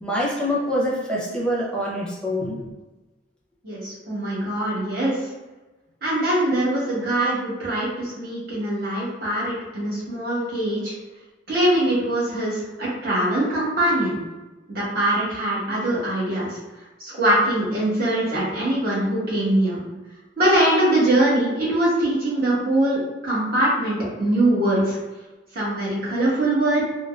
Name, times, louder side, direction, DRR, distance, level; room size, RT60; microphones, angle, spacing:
voice 1, 0.0-2.6, equal, 5° left, -5 dB, 0.7 m, -25 dB
voice 2, 3.6-5.3 6.0-10.9 11.5-14.2 14.7-16.6 17.0-19.8 20.4-25.0 25.5-26.8, right 1 dB, 55° right, -8 dB, 1.4 m, -22 dB
3.7 x 2.3 x 2.4 m, 1.1 s
head